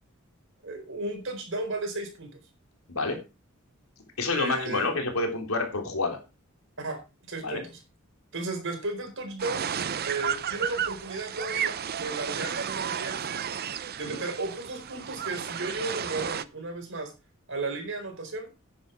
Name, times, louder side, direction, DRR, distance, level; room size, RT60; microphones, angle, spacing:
voice 1, 0.6-2.3 4.3-4.9 6.8-7.0 7.3-7.8 8.3-9.7 10.0-13.3 14.0-17.1 17.5-18.5, right 2 dB, 65° right, 4 dB, 4.4 m, -34 dB
voice 2, 4.2-6.2 7.4-7.6 14.1-14.2, left 3 dB, 80° left, 3 dB, 3.4 m, -28 dB
sound 1, 9.4-16.4, right 8 dB, 45° right, 0.7 m, -33 dB
10.0 x 10.0 x 4.5 m, 0.28 s
head